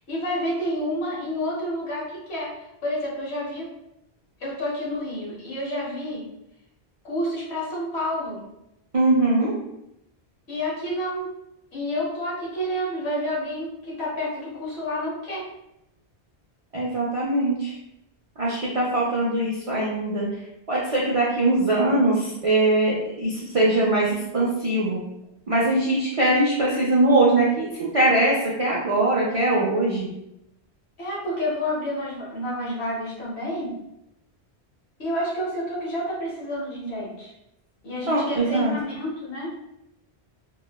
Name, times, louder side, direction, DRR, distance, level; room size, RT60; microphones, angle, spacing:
voice 1, 0.1-2.5 2.8-3.7 4.4-6.2 7.0-8.4 10.5-11.3 11.7-15.5 31.0-33.7 35.0-37.3 37.8-39.7, equal, 75° left, -5 dB, 1.2 m, -29 dB
voice 2, 8.9-9.5 16.7-17.7 18.4-20.3 20.7-25.0 25.5-30.1 38.1-38.7, right 2 dB, 60° right, -5 dB, 0.3 m, -21 dB
3.0 x 2.1 x 2.2 m, 0.85 s
omnidirectional pair, 1.1 m